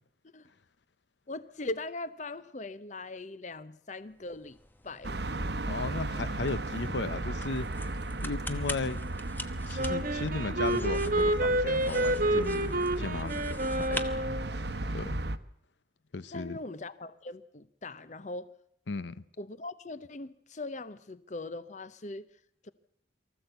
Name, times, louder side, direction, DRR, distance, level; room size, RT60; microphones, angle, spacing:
voice 1, 1.3-4.6 4.8-5.2 16.3-18.5 19.4-22.3 22.6-22.7, left 2 dB, 40° left, 0.7 m, -40 dB
sound 1, 4.1-14.9, left 2 dB, 10° left, 1.0 m, -45 dB
sound 2, 5.0-15.4, right 2 dB, 65° right, 0.9 m, -35 dB
voice 2, 5.6-7.7 8.2-9.0 9.6-12.7 13.0-14.0 14.9-15.2 16.1-16.6 18.9-19.2, left 3 dB, 75° left, 0.7 m, -35 dB
Wind instrument woodwind instrument, 9.8-14.5, right 1 dB, 45° right, 1.3 m, -29 dB
23.5 x 15.0 x 8.0 m
head